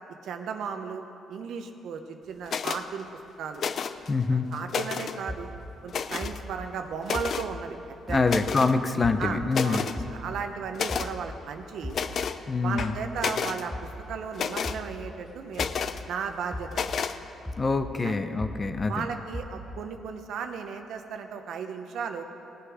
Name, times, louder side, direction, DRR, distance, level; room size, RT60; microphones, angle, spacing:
voice 1, 0.2-1.0 1.3-3.1 3.4-3.6 4.3-5.5 5.8-7.8 8.1-8.2 9.2-12.0 12.6-15.7 16.1-17.0 18.0-18.1 18.9-22.2, right 6 dB, 75° right, 6 dB, 0.9 m, -35 dB
sound 1, 2.5-2.8 3.6-4.1 4.5-5.2 5.9-6.4 7.0-7.5 8.3-8.8 9.2-9.3 9.5-10.0 10.7-11.1 11.9-12.4 12.8-13.6 14.3-14.8 15.5-16.0 16.7-17.2, left 6 dB, 55° left, 0.5 m, -31 dB
voice 2, 4.1-4.5 8.1-9.9 12.5-13.0 17.5-19.1, left 3 dB, 30° left, 8 dB, 0.8 m, -25 dB
sound 2, 5.3-8.7 9.0-11.5 11.8-16.2 16.5-19.0 19.3-20.0, left 1 dB, 5° left, 1.1 m, -39 dB
19.0 x 8.0 x 5.0 m, 2.8 s
cardioid pair, 90°, 0 cm